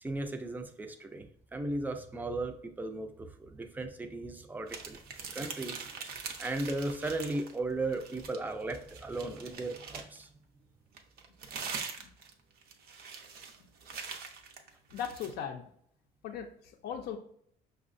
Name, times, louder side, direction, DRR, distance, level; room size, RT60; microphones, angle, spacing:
voice 1, 0.0-5.0 5.3-5.8 6.4-10.3, right 2 dB, 10° right, 6 dB, 0.4 m, -36 dB
sound 1, 4.7-7.6 7.9-10.2 11.0-15.3, right 5 dB, 60° right, 0.6 m, -43 dB
voice 2, 14.9-15.6 16.2-17.2, left 8 dB, 70° left, 5 dB, 0.5 m, -38 dB
5.4 x 2.1 x 2.5 m, 0.66 s
cardioid pair, 110°, 17 cm